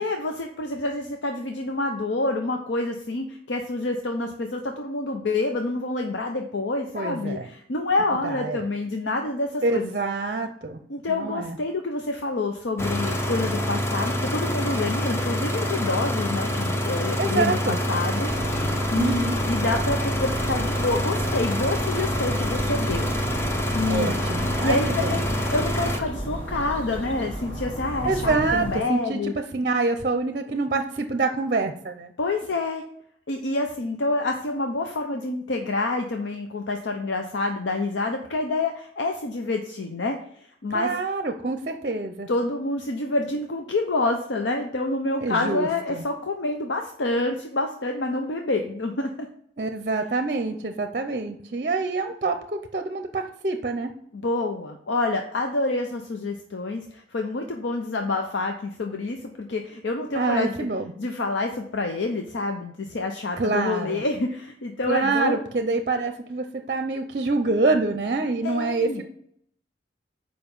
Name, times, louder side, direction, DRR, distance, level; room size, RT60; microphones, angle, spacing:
voice 1, 0.0-9.9 10.9-23.4 23.7-24.2 24.6-29.3 32.2-32.8 33.3-40.9 42.3-49.1 54.1-60.5 61.0-65.4 68.4-69.0, left 2 dB, 80° left, 4 dB, 0.7 m, -27 dB
voice 2, 6.9-7.5 8.2-8.6 9.6-10.8 11.1-11.5 17.2-17.8 18.9-19.4 23.9-25.2 28.0-32.1 40.7-42.3 45.2-46.0 49.6-53.9 60.1-60.9 63.4-64.0 64.9-69.0, right 3 dB, 45° right, 7 dB, 0.6 m, -26 dB
sound 1, 12.8-26.0, equal, 15° left, 0.6 m, -26 dB
sound 2, 18.3-28.8, equal, 30° left, 1.9 m, -33 dB
6.9 x 5.0 x 5.4 m, 0.67 s
head